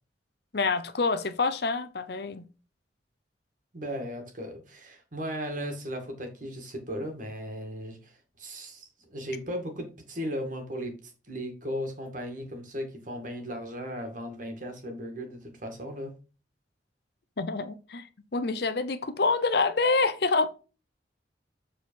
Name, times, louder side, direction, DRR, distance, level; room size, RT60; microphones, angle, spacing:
voice 1, 0.5-2.4 17.4-18.1 18.3-20.5, left 3 dB, 60° left, 0.8 m, -26 dB
voice 2, 3.7-16.2, equal, 45° right, 2.1 m, -36 dB
7.6 x 4.3 x 4.6 m
head